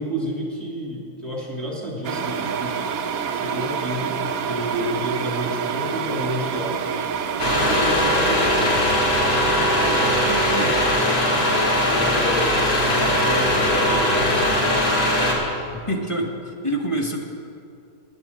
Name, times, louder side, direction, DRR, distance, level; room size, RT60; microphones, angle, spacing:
voice 1, 0.0-2.8 3.3-6.8 7.4-8.9 9.3-10.8 11.9-14.5, right 1 dB, ahead, -3 dB, 2.5 m, -30 dB
sound 1, 2.0-8.0, right 7 dB, 75° right, 1.1 m, -27 dB
sound 2, 7.4-15.3, equal, 80° left, 2.5 m, -20 dB
voice 2, 15.7-17.2, right 1 dB, 20° left, 1 dB, 1.2 m, -26 dB
11.0 x 8.7 x 8.4 m, 2.5 s
omnidirectional pair, 1.6 m